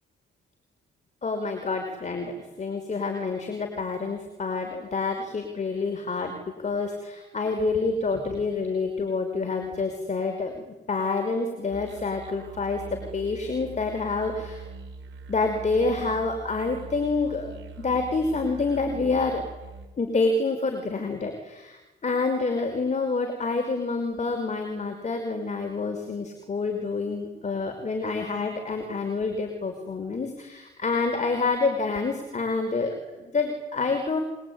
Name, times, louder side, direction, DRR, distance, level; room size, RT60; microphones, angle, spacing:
voice 1, 1.2-14.6 15.3-17.6 17.8-19.4 20.0-34.2, left 3 dB, 35° left, 5 dB, 5.5 m, -28 dB
sound 1, 11.7-19.9, right 3 dB, 75° right, 6.4 m, -42 dB
25.0 x 23.5 x 9.7 m, 1.1 s
cardioid pair, 90°, 20 cm